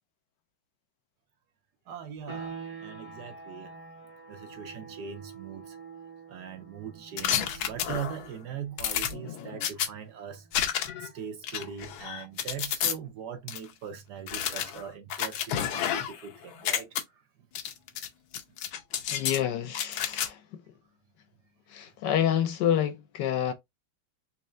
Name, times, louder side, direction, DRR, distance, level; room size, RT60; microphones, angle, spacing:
voice 1, 1.9-2.5 2.8-3.7 4.3-5.8 6.3-10.5 11.0-16.9, right 8 dB, 65° right, 1.1 m, -40 dB
sound 1, 2.3-12.8, right 5 dB, 30° right, 0.6 m, -47 dB
sound 2, 7.2-8.3 8.8-9.9 10.5-11.1 11.4-12.9 13.5-13.6 14.3-16.3 16.5-17.0 17.6-18.1 18.3-19.4 19.7-20.3, left 9 dB, 90° left, 1.5 m, -30 dB
voice 2, 19.1-20.4 21.7-23.5, left 10 dB, 70° left, 1.1 m, -28 dB
4.2 x 3.1 x 2.5 m
omnidirectional pair, 2.2 m